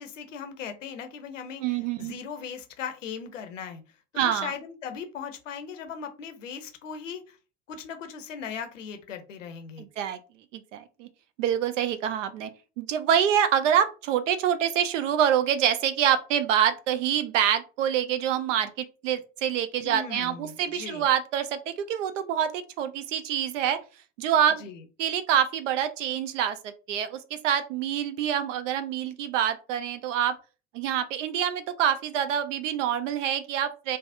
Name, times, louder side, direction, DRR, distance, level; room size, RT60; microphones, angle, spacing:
voice 1, 0.0-3.8 4.1-7.4 7.7-9.9 19.8-21.1 24.6-24.8, left 7 dB, 85° left, 8 dB, 0.6 m, -38 dB
voice 2, 1.6-2.1 4.2-4.5 9.8-10.2 10.5-11.1 11.4-12.5 12.8-23.8 24.2-24.6 25.0-26.6 26.9-30.4 30.7-34.0, right 9 dB, 80° right, 11 dB, 0.5 m, -26 dB
3.3 x 2.0 x 2.6 m, 0.34 s
hypercardioid pair, 70°, 37 cm